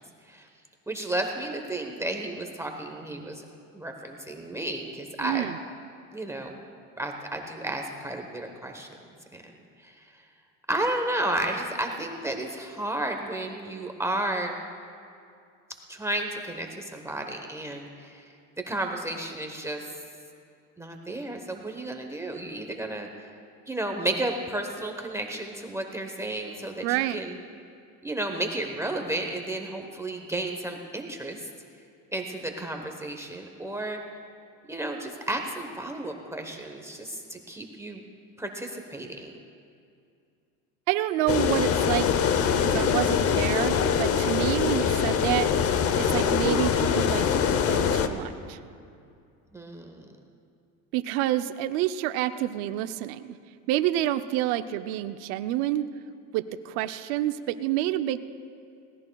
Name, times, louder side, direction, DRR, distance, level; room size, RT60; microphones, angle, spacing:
voice 1, 0.9-3.4 3.7-5.5 6.1-6.6 7.0-8.9 9.3-9.4 9.8-10.1 10.7-14.5 15.9-18.3 18.7-19.9 20.8-23.3 23.7-27.4 28.0-31.5 32.1-34.0 34.7-38.1 38.4-39.4 49.5-50.1, right 1 dB, 10° right, 3 dB, 1.0 m, -32 dB
voice 2, 5.2-5.6 26.8-27.2 40.9-42.1 42.6-45.5 46.0-48.6 50.9-53.2 53.7-55.9 56.3-58.2, right 14 dB, 80° right, 11 dB, 0.6 m, -28 dB
sound 1, 41.3-48.1, left 7 dB, 40° left, 0.8 m, -23 dB
22.0 x 17.5 x 2.3 m, 2.4 s
cardioid pair, 120°, 35 cm